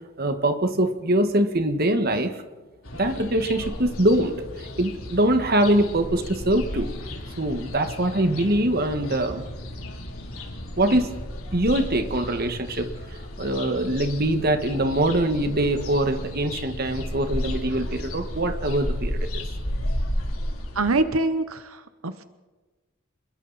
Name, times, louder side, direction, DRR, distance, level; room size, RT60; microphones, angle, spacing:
voice 1, 0.2-2.4 3.0-6.9 7.4-9.4 10.8-11.1 11.5-12.9 13.4-19.4, right 1 dB, 45° right, 7 dB, 1.7 m, -23 dB
sound 1, 2.8-21.0, left 1 dB, 90° left, 3.1 m, -33 dB
voice 2, 20.7-22.2, right 2 dB, 85° right, 11 dB, 1.0 m, -25 dB
28.0 x 21.5 x 4.2 m, 1.2 s
head